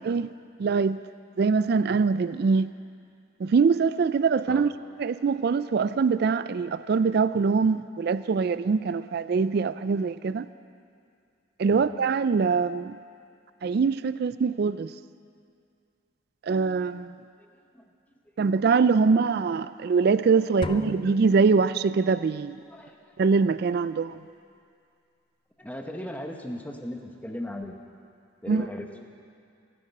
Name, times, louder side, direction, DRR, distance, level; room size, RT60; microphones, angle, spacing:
voice 1, 0.6-1.0 1.4-2.7 3.4-4.7 5.0-10.5 11.6-13.0 13.6-14.9 16.5-17.1 18.4-22.6 23.2-24.2 28.5-28.7, right 5 dB, 55° right, 14 dB, 0.3 m, -23 dB
voice 2, 20.4-20.8 22.7-23.1 25.6-27.8 28.4-28.9, left 1 dB, 10° left, 2 dB, 1.0 m, -37 dB
sound 1, 20.6-22.3, left 2 dB, 25° left, 0.4 m, -37 dB
25.0 x 8.7 x 5.5 m, 2.4 s
head